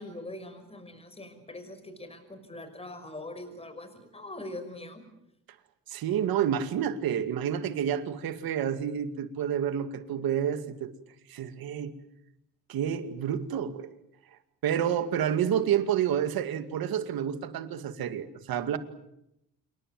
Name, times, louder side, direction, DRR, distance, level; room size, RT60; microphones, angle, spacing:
voice 1, 0.0-5.0, left 1 dB, 15° left, 9 dB, 5.7 m, -42 dB
voice 2, 5.9-10.9 11.3-11.9 12.7-13.9 14.6-18.8, right 9 dB, 85° right, 9 dB, 2.4 m, -29 dB
28.0 x 23.0 x 7.8 m, 0.83 s
cardioid pair, 110°, 35 cm